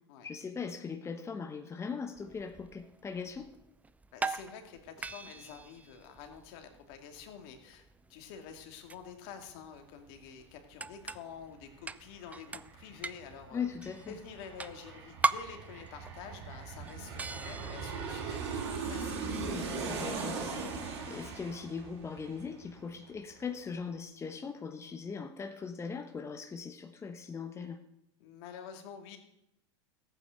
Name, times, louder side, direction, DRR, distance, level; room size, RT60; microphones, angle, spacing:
voice 1, 0.2-3.5 13.5-14.1 19.5-27.8, left 5 dB, 20° left, 6 dB, 1.1 m, -40 dB
sound 1, 2.2-20.9, right 3 dB, 10° right, 0.5 m, -42 dB
voice 2, 4.1-13.6 14.1-19.2 28.2-29.2, left 7 dB, 55° left, 5 dB, 2.5 m, -48 dB
Aircraft, 11.5-11.6 11.9-23.2 23.5-23.6, right 4 dB, 70° right, 5.1 m, -40 dB
15.0 x 9.0 x 6.6 m, 0.83 s
hypercardioid pair, 95°, 15 cm